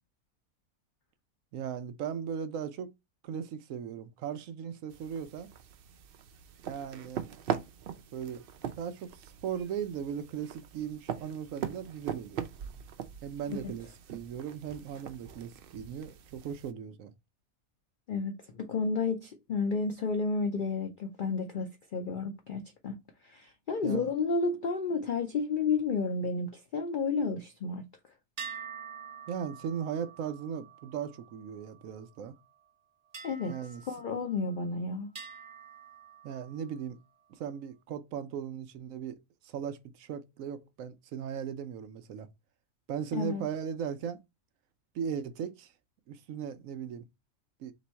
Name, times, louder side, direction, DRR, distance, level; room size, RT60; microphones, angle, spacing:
voice 1, 1.5-2.9 3.2-5.5 6.7-7.3 8.1-8.4 8.7-12.4 13.2-17.1 23.8-24.1 29.3-32.3 33.5-33.8 36.2-37.0 37.4-39.2 39.4-42.3 42.9-44.2 44.9-45.7 46.1-47.0 47.6-47.7, right 8 dB, 70° right, 0.9 m, -37 dB
sound 1, 4.9-16.7, right 8 dB, 90° right, 0.5 m, -41 dB
voice 2, 18.1-23.0 23.2-27.8 33.2-33.5 33.9-35.1 43.1-43.4, left 4 dB, 70° left, 0.4 m, -31 dB
sound 2, 28.4-32.0 33.1-34.7 35.1-36.8, right 6 dB, 40° right, 0.6 m, -47 dB
3.4 x 3.0 x 4.2 m
omnidirectional pair, 1.5 m